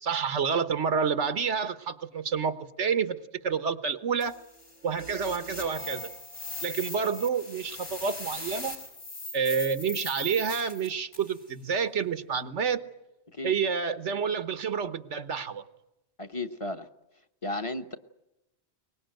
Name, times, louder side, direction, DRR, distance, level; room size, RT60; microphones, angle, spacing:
voice 1, 0.0-4.4 4.8-6.1 6.6-8.8 9.3-12.8 13.4-15.6, right 6 dB, 85° right, 1.5 m, -29 dB
sound 1, 4.2-11.4, left 2 dB, 85° left, 5.2 m, -40 dB
voice 2, 16.2-16.9 17.4-18.0, left 2 dB, 30° left, 1.1 m, -34 dB
23.0 x 20.0 x 9.1 m
omnidirectional pair, 1.2 m